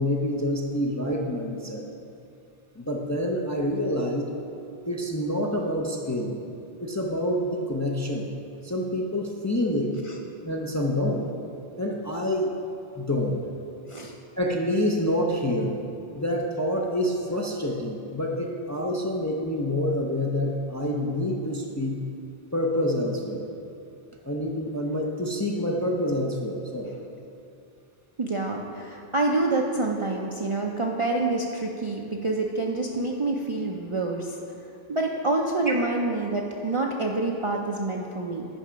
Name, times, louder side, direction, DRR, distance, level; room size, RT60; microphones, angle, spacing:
voice 1, 0.0-1.8 2.8-4.3 4.8-6.4 6.8-8.3 8.6-9.9 10.4-11.3 11.8-12.5 13.0-13.4 14.4-15.8 16.1-22.0 22.5-23.4 24.2-26.9, left 1 dB, 20° left, -1 dB, 0.4 m, -27 dB
voice 2, 28.2-34.4 34.9-38.5, right 2 dB, 45° right, 0 dB, 0.4 m, -27 dB
8.9 x 5.6 x 5.1 m, 2.6 s
omnidirectional pair, 1.1 m